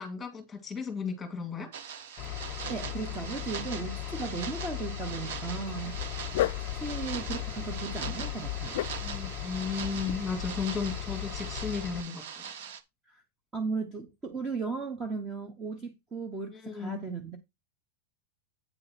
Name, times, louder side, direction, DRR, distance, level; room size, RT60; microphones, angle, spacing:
voice 1, 0.0-1.7 6.3-6.5 9.0-12.5 16.5-17.0, left 5 dB, 10° left, 2.2 m, -35 dB
sound 1, 1.7-12.8, right 7 dB, 60° right, 1.0 m, -41 dB
Engine, 2.2-12.0, left 14 dB, 25° left, 0.7 m, -38 dB
voice 2, 2.7-6.0 6.6-8.8 13.1-13.2 13.5-17.4, right 4 dB, 15° right, 0.9 m, -36 dB
Dog, 5.8-11.7, left 14 dB, 55° left, 0.5 m, -37 dB
8.9 x 3.7 x 5.9 m
supercardioid pair, 170°, 0 cm